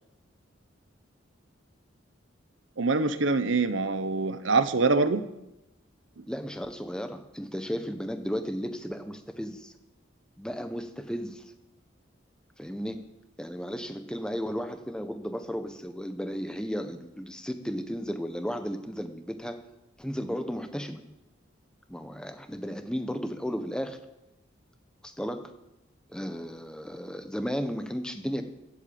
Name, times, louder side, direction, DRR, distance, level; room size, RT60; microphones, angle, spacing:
voice 1, 2.8-5.2 6.2-6.3, right 3 dB, 75° right, 12 dB, 0.9 m, -25 dB
voice 2, 6.3-9.7 10.4-11.4 12.6-13.0 13.4-19.6 20.0-21.0 21.9-24.0 25.0-25.5 26.1-28.4, equal, 5° left, 7 dB, 1.0 m, -34 dB
14.0 x 8.2 x 8.6 m, 0.93 s
head